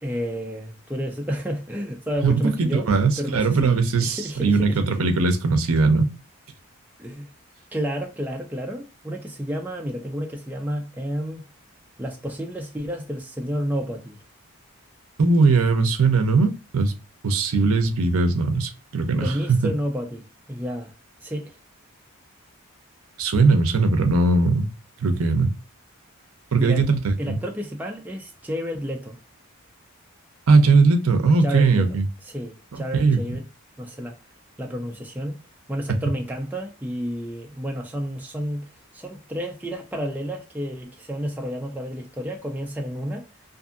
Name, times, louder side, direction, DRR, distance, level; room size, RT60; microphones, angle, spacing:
voice 1, 0.0-2.9 3.2-5.0 7.0-7.3 7.7-11.4 12.0-14.2 19.2-20.9 21.2-21.6 26.6-26.9 27.2-29.2 31.4-31.9 32.3-33.4 33.8-34.2 34.6-35.4 35.7-38.7 38.9-43.3, equal, 5° right, 0.4 m, -30 dB
voice 2, 2.2-6.1 15.2-16.9 17.2-19.7 23.2-24.7 25.0-25.5 26.5-27.4 30.5-32.1 32.9-33.2, right 3 dB, 70° right, 0.6 m, -19 dB
2.6 x 2.6 x 2.4 m
head